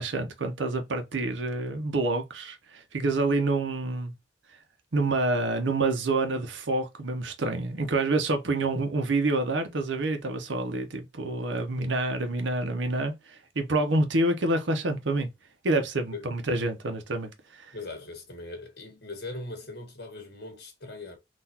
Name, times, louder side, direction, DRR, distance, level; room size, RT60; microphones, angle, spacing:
voice 1, 0.0-4.1 4.9-15.3 15.6-17.6, right 2 dB, 85° right, 0.7 m, -27 dB
voice 2, 17.7-21.2, left 2 dB, 60° left, 1.4 m, -40 dB
3.9 x 2.5 x 2.8 m
head